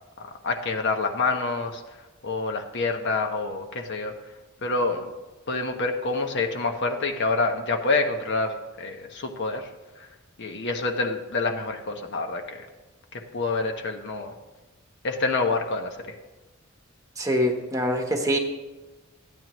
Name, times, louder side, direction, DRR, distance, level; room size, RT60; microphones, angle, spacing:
voice 1, 0.4-1.8 2.2-4.1 4.6-5.1 5.5-9.7 10.0-10.1 10.4-12.7 13.3-14.3 15.0-16.1, left 3 dB, 55° left, 4 dB, 0.9 m, -27 dB
voice 2, 17.2-18.4, equal, 15° right, 2 dB, 1.1 m, -24 dB
14.0 x 9.2 x 3.0 m, 1.1 s
head